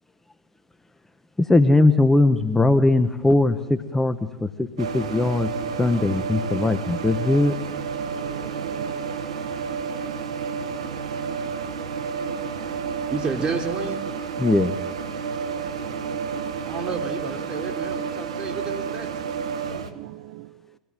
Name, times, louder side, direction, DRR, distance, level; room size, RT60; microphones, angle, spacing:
voice 1, 1.4-4.5 4.8-5.5 5.8-7.5 14.4-14.7, left 2 dB, 10° left, 1.4 m, -19 dB
sound 1, 4.8-19.9, right 6 dB, 80° right, 1.9 m, -30 dB
voice 2, 8.1-9.0 15.6-16.5 19.7-20.5, right 18 dB, 60° right, 0.8 m, -42 dB
voice 3, 13.1-14.0 16.6-19.1, right 4 dB, 30° right, 4.3 m, -30 dB
24.0 x 17.0 x 9.2 m
hypercardioid pair, 85°, 3 cm